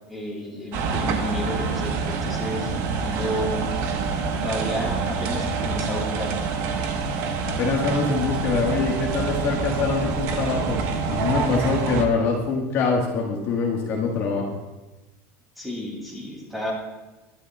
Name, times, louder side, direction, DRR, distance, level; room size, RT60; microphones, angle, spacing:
voice 1, 0.1-3.6 4.4-6.3 15.6-16.7, equal, ahead, -3 dB, 2.7 m, -31 dB
sound 1, 0.7-12.1, right 5 dB, 45° right, 1.2 m, -26 dB
voice 2, 7.6-14.4, left 4 dB, 40° left, -2 dB, 1.6 m, -24 dB
21.5 x 11.0 x 2.4 m, 1.1 s
supercardioid pair, 170°, 7 cm